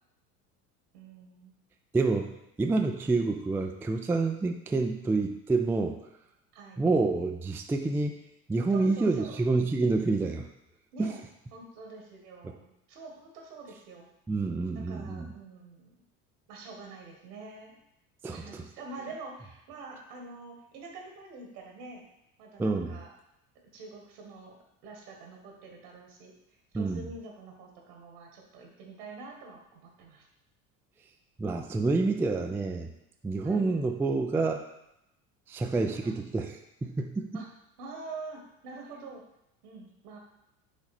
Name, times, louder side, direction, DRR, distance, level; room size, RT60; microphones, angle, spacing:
voice 1, 0.9-1.5 6.5-6.8 8.7-9.4 10.9-11.2 11.5-14.1 14.7-15.9 16.5-17.8 18.3-22.0 22.4-23.1 23.7-24.6 24.8-26.3 26.7-30.3 33.4-33.8 36.0-36.1 37.3-37.5 37.8-39.2 39.6-40.2, right 3 dB, 75° right, 1 dB, 1.7 m, -46 dB
voice 2, 1.9-2.3 2.6-6.0 6.8-8.2 8.5-10.5 11.0-11.1 14.3-15.3 18.2-18.6 22.6-23.0 26.7-27.0 31.4-32.9 33.2-34.6 35.5-37.3, right 3 dB, 5° right, 5 dB, 0.3 m, -28 dB
6.2 x 4.0 x 4.2 m, 0.84 s
hypercardioid pair, 65°, 46 cm